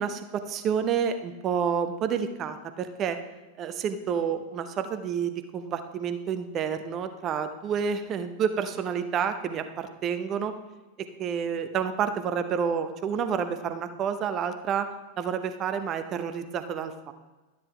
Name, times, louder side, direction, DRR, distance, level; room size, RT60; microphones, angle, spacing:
voice 1, 0.0-3.2 3.6-10.5 11.0-14.9 15.2-17.1, right 7 dB, 30° right, 9 dB, 0.8 m, -29 dB
12.5 x 9.4 x 3.4 m, 1.2 s
figure-of-eight pair, 90°, 0 cm